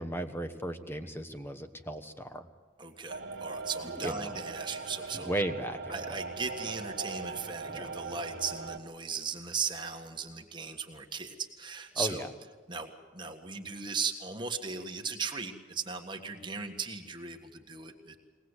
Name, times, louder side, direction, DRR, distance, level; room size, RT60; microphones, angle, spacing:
voice 1, 0.0-2.5 4.0-4.3 5.3-5.9 7.7-7.9 11.9-12.3, right 1 dB, 10° left, 8 dB, 1.1 m, -35 dB
voice 2, 2.8-5.3 5.9-12.3 12.7-18.2, right 5 dB, 25° right, 3 dB, 1.6 m, -37 dB
sound 1, 3.1-8.8, right 3 dB, 65° right, 1.6 m, -40 dB
22.5 x 19.0 x 8.1 m, 1.4 s
head